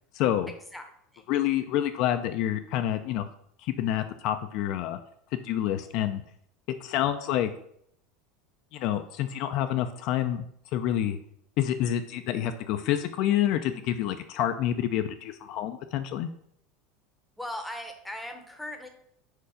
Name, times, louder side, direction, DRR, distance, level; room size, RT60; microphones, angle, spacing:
voice 1, 0.1-0.5 1.3-3.3 3.6-5.0 5.4-6.2 6.8-7.5 8.7-10.4 10.7-11.2 11.6-16.3, left 11 dB, 55° left, 8 dB, 0.4 m, -28 dB
voice 2, 0.7-1.3 17.4-18.9, left 1 dB, 5° left, 5 dB, 0.8 m, -39 dB
4.6 x 4.3 x 4.9 m, 0.69 s
supercardioid pair, 140°, 0 cm